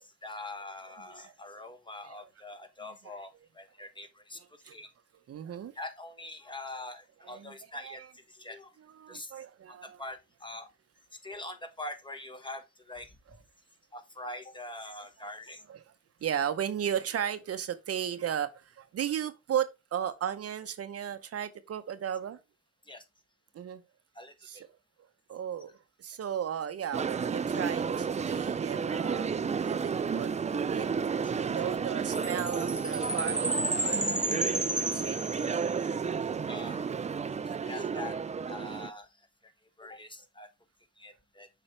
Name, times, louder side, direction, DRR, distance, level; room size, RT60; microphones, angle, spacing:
voice 1, 0.0-4.9 5.7-8.8 9.1-10.7 11.2-13.4 13.9-15.6 22.8-23.0 24.1-24.6 30.8-30.9 31.2-31.3 34.0-34.1 36.5-36.8 37.3-38.2 38.4-39.5 39.8-40.5 41.0-41.5, left 2 dB, 15° left, 1.3 m, -44 dB
voice 2, 5.3-5.7 7.3-7.5 7.8-7.9 9.0-10.0 16.2-22.4 23.5-23.8 24.5-24.6 25.3-29.3 29.7-30.9 31.4-34.2 34.9-35.5, right 9 dB, 50° right, 0.8 m, -35 dB
sound 1, 26.9-38.9, right 6 dB, 25° right, 0.4 m, -32 dB
Chime, 32.2-35.9, right 1 dB, 5° right, 0.9 m, -32 dB
7.3 x 5.0 x 3.2 m
cardioid pair, 90°, 30 cm